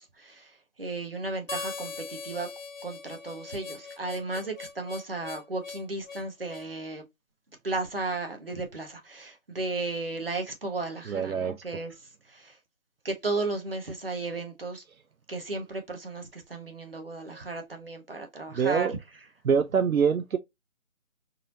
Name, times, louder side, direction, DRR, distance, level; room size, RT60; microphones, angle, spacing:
voice 1, 0.0-2.5 2.8-7.0 7.6-11.9 12.3-12.6 13.0-14.8 15.3-18.9, right 3 dB, 45° right, 1.0 m, -34 dB
Harmonica, 1.5-6.7, left 4 dB, 70° left, 0.9 m, -40 dB
voice 2, 11.1-11.6 18.5-18.9 19.4-20.4, right 6 dB, 80° right, 0.6 m, -25 dB
4.0 x 2.6 x 2.7 m
figure-of-eight pair, 175°, 41 cm